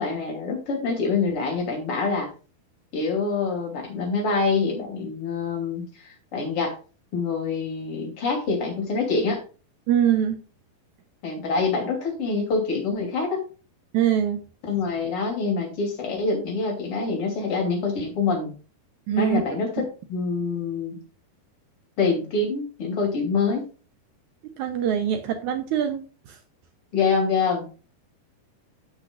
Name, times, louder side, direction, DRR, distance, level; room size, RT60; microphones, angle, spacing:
voice 1, 0.0-2.3 2.9-6.7 7.1-9.4 11.2-13.4 14.7-18.5 19.2-20.9 22.0-23.7 26.9-27.6, left 4 dB, 40° left, 1 dB, 3.4 m, -25 dB
voice 2, 9.9-10.4 13.9-14.5 19.1-19.4 19.8-19.9 24.6-26.0, right 9 dB, 85° right, 6 dB, 1.7 m, -23 dB
14.0 x 6.0 x 2.4 m, 0.36 s
omnidirectional pair, 4.4 m